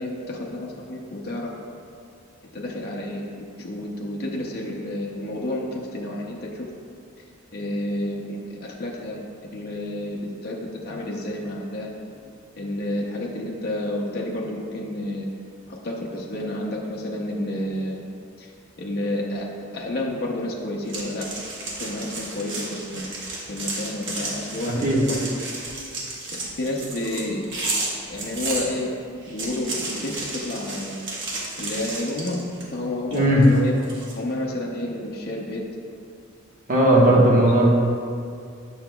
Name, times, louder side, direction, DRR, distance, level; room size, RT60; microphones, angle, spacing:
voice 1, 0.0-1.5 2.5-6.7 7.5-9.2 9.5-11.9 12.6-15.3 15.7-18.0 18.4-18.5 18.8-21.3 21.8-23.1 23.5-25.3 26.3-27.7 28.1-28.9 29.3-31.0 31.6-33.7 34.2-35.6 37.1-37.3 37.6-37.7, left 1 dB, 50° left, -1 dB, 0.7 m, -30 dB
sound 1, 20.9-28.6 29.2-32.7 33.1-34.1, right 2 dB, 65° right, 1.2 m, -32 dB
voice 2, 24.6-25.0 33.1-33.4 36.7-37.7, right 1 dB, 40° right, -4 dB, 1.2 m, -17 dB
8.5 x 6.2 x 2.2 m, 2.3 s
head